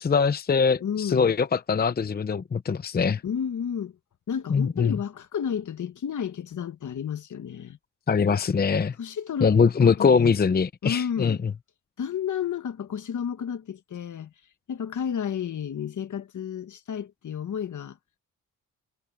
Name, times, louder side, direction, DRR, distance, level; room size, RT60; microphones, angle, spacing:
voice 1, 0.0-3.2 4.5-5.0 8.1-8.9 9.4-11.4, left 5 dB, 30° left, 0.7 m, -22 dB
voice 2, 0.8-1.4 3.2-3.9 4.3-7.8 9.0-9.5 9.8-10.4 10.8-11.4 12.0-14.3 14.7-18.0, left 8 dB, 60° left, 1.6 m, -31 dB
cardioid pair, 85°, 33 cm